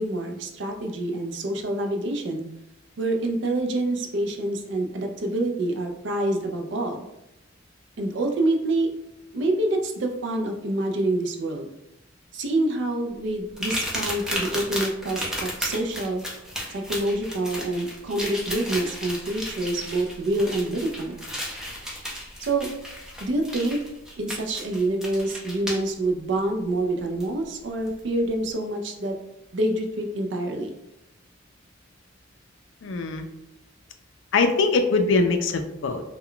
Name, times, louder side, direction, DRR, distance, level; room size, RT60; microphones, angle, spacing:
voice 1, 0.0-2.5 3.0-7.0 8.0-8.9 9.3-11.7 12.3-16.2 16.7-21.2 22.4-22.7 23.2-23.8 24.2-29.1 29.5-30.7, right 2 dB, 65° right, 4 dB, 0.4 m, -26 dB
sound 1, 13.6-25.9 27.2-27.3 27.9-28.0, equal, 5° right, 0.4 m, -34 dB
voice 2, 32.8-33.3 34.3-36.0, left 3 dB, 70° left, 7 dB, 0.4 m, -22 dB
2.2 x 2.1 x 3.7 m, 0.86 s
head